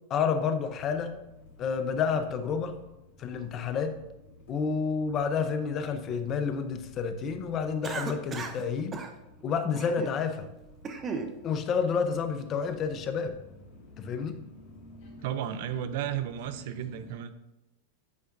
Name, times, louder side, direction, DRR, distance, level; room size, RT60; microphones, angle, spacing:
voice 1, 0.1-1.1 1.6-2.7 3.2-4.0 4.5-9.0 9.4-10.5 11.4-13.4 14.0-14.4, left 6 dB, 35° left, 8 dB, 0.7 m, -29 dB
sound 1, 0.7-17.1, left 2 dB, 55° left, 2.5 m, -53 dB
Cough, 7.8-8.6 8.9-9.1 9.8-10.2 10.6-11.3, right 4 dB, 30° right, 0.7 m, -35 dB
voice 2, 15.2-17.3, right 10 dB, 65° right, 11 dB, 0.5 m, -33 dB
8.4 x 5.0 x 2.6 m, 0.91 s
hypercardioid pair, 110°, 0 cm